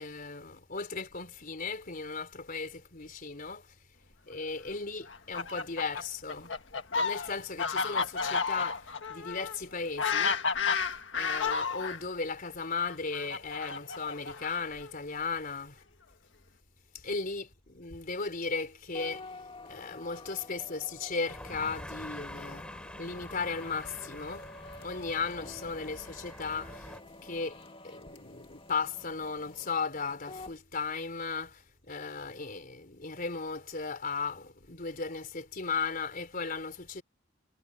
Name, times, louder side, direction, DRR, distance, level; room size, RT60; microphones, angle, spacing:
voice 1, 0.0-3.8 4.3-6.5 6.9-10.4 10.8-15.8 16.9-19.4 19.7-22.7 23.0-24.5 24.8-37.0, left 4 dB, 50° left, 4.1 m, -36 dB
Fowl, 5.1-12.0 12.8-14.8, left 5 dB, 75° left, 1.7 m, -32 dB
sound 1, 18.9-30.6, left 2 dB, 30° left, 1.9 m, -49 dB
sound 2, 21.3-27.0, left 1 dB, 5° left, 3.1 m, -46 dB
head